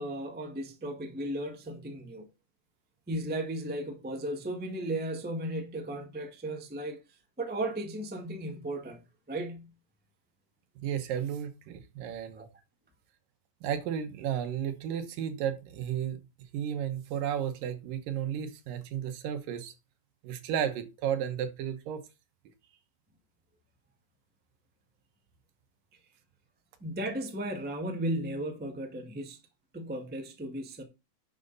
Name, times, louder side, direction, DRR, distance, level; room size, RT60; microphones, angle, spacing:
voice 1, 0.0-2.3 3.1-7.0 7.4-9.0 9.3-9.7 12.3-12.5 26.8-29.4 29.7-30.8, right 1 dB, 15° right, 0.3 m, -35 dB
voice 2, 10.8-12.5 13.6-16.2 16.5-19.7 20.2-22.0, right 9 dB, 80° right, 2.9 m, -33 dB
11.0 x 6.5 x 4.1 m
omnidirectional pair, 3.9 m